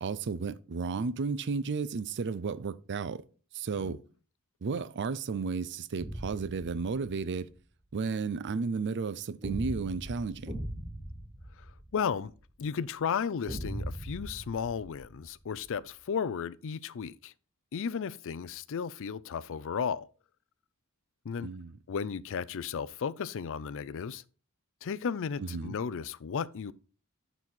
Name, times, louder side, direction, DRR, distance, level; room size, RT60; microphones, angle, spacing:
voice 1, 0.0-3.2 3.5-4.0 4.6-7.5 7.9-10.5 21.4-21.8 25.4-25.8, right 4 dB, 55° right, 0.5 m, -33 dB
sound 1, 6.0-7.4 9.4-12.4 13.5-15.6, right 1 dB, 30° right, 3.9 m, -40 dB
voice 2, 11.9-12.3 12.6-17.3 17.7-20.1 21.2-21.5 21.9-24.2 24.8-26.7, left 6 dB, 65° left, 0.4 m, -34 dB
10.5 x 4.1 x 4.4 m
head